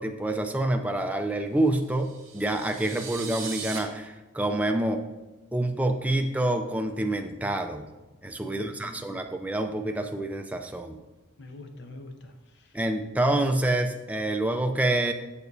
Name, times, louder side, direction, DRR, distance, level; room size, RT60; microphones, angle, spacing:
voice 1, 0.0-5.0 5.5-7.9 8.2-11.0 12.7-15.1, right 1 dB, 5° right, 4 dB, 0.4 m, -27 dB
sound 1, 1.9-3.8, right 6 dB, 70° right, 1.6 m, -39 dB
voice 2, 8.4-9.2 11.4-12.8, left 2 dB, 55° left, 6 dB, 0.6 m, -45 dB
7.0 x 6.6 x 2.7 m, 1.1 s
head